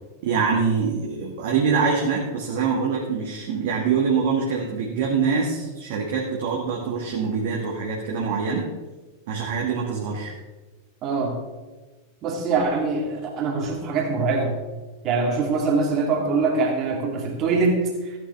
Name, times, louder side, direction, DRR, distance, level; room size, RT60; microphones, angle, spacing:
voice 1, 0.2-8.6 9.3-10.3, right 5 dB, 50° right, -3 dB, 1.8 m, -24 dB
voice 2, 11.0-11.4 12.2-14.5 15.0-18.2, right 4 dB, 35° right, 0 dB, 2.6 m, -23 dB
14.5 x 9.0 x 3.4 m, 1.3 s
figure-of-eight pair, 90°, 0 cm